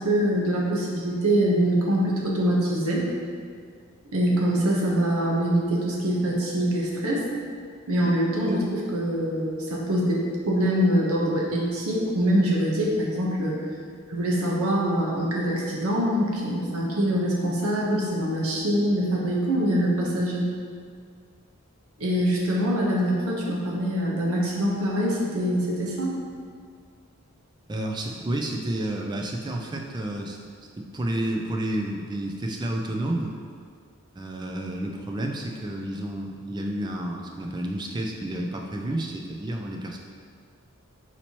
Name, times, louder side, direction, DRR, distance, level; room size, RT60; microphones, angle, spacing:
voice 1, 0.0-3.1 4.1-7.2 7.9-13.6 14.1-20.5 22.0-26.1, equal, 80° right, -4 dB, 0.9 m, -24 dB
voice 2, 27.7-30.4 30.8-33.3 34.1-40.0, right 1 dB, 20° right, 1 dB, 0.3 m, -30 dB
4.2 x 2.8 x 4.4 m, 2.1 s
head